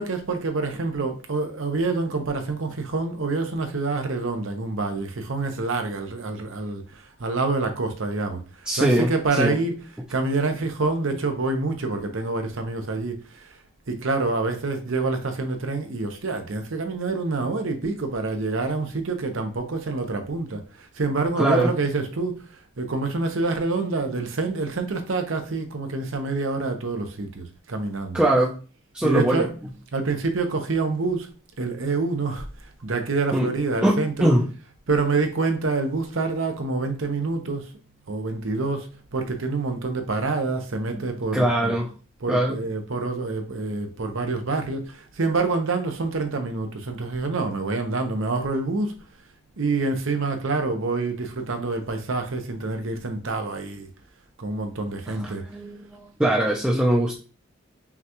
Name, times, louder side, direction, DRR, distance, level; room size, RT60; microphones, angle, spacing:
voice 1, 0.0-13.5 13.9-22.4 22.8-28.2 29.0-29.5 29.9-31.3 31.6-34.4 34.9-37.7 38.1-41.7 42.2-49.0 49.6-53.9 54.4-55.5, right 3 dB, 65° right, 0.8 m, -27 dB
voice 2, 8.7-9.5 21.4-21.7 28.1-28.6 28.9-29.5 33.3-33.5 33.8-34.5 40.9-41.9 42.3-42.6 55.1-57.2, right 1 dB, 5° right, 0.5 m, -22 dB
5.6 x 2.4 x 3.0 m
head